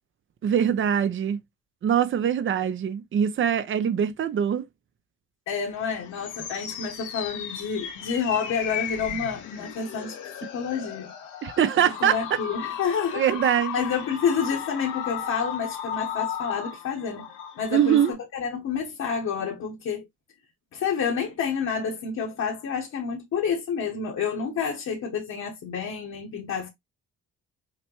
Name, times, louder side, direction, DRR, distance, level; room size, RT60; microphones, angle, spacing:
voice 1, 0.4-1.4 1.8-4.7 11.4-12.4 13.1-13.8 17.7-18.1, right 9 dB, 40° right, 0.6 m, -23 dB
voice 2, 5.5-10.2 10.4-11.1 12.0-13.2 13.7-17.3 17.6-20.0 20.7-26.7, left 6 dB, 65° left, 1.2 m, -29 dB
sound 1, 5.8-18.1, left 8 dB, 85° left, 1.0 m, -35 dB
5.8 x 2.1 x 3.0 m
cardioid pair, 90°, 30 cm